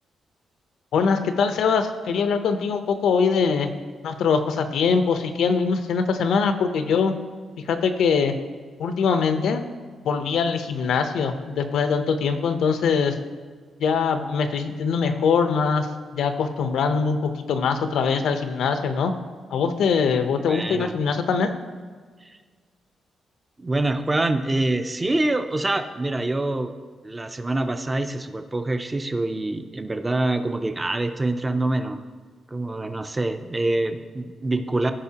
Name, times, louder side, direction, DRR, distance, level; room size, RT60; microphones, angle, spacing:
voice 1, 0.9-3.7 4.0-7.1 7.7-8.3 8.8-9.6 10.0-13.2 13.8-15.9 16.1-19.1 19.5-21.5, left 5 dB, 85° left, 8 dB, 0.7 m, -22 dB
voice 2, 20.5-20.9 22.2-22.3 23.6-26.7 27.0-32.0 32.5-34.9, right 2 dB, 15° right, 8 dB, 0.4 m, -25 dB
15.0 x 5.0 x 2.8 m, 1.5 s
wide cardioid pair, 170°, 0 cm